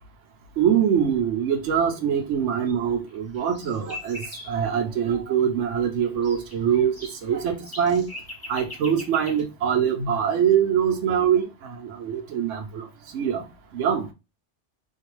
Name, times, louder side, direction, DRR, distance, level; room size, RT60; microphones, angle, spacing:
voice 1, 0.6-4.2 4.5-6.9 7.2-8.1 8.5-12.9 13.1-13.4 13.7-14.0, right 8 dB, 85° right, 0.9 m, -23 dB
sound 1, 2.7-2.8 3.1-4.6 5.8-9.4, left 2 dB, 15° left, 0.9 m, -41 dB
2.6 x 2.2 x 2.9 m
omnidirectional pair, 1.2 m